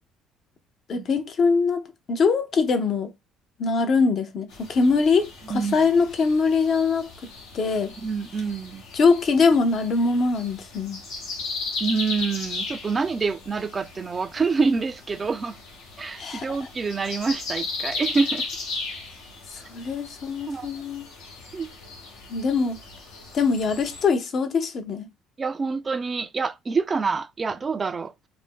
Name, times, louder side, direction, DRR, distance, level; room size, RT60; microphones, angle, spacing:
voice 1, 0.9-3.1 3.6-7.1 7.5-7.9 8.9-11.0 16.2-16.5 19.7-21.0 22.3-22.8 23.3-25.1, left 4 dB, 50° left, 0.6 m, -22 dB
sound 1, 4.5-24.1, left 3 dB, 85° left, 1.0 m, -37 dB
voice 2, 8.0-8.8 11.8-15.6 16.0-18.5 20.5-20.7 21.5-21.7 25.4-28.1, right 4 dB, 30° right, 0.3 m, -26 dB
2.5 x 2.1 x 3.5 m
supercardioid pair, 85°, 0 cm